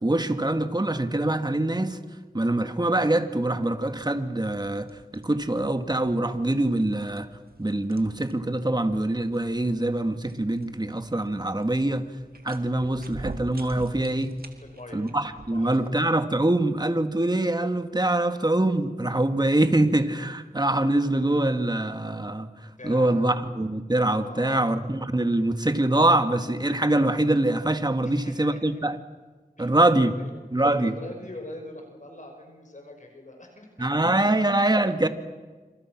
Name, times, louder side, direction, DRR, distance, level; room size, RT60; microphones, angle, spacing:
voice 1, 0.0-2.0 2.3-7.3 7.6-12.1 12.4-14.3 14.9-29.0 29.6-30.2 30.5-31.0 33.8-35.1, right 1 dB, 25° right, 7 dB, 2.1 m, -24 dB
sound 1, 4.3-16.1, right 3 dB, 85° right, 2.4 m, -47 dB
voice 2, 14.6-15.0 15.5-15.7 22.8-23.2 24.2-24.7 28.0-28.8 29.6-30.3 30.6-34.4, left 1 dB, 55° left, 4 dB, 5.6 m, -43 dB
28.0 x 27.0 x 6.2 m, 1.4 s
wide cardioid pair, 55°, 15 cm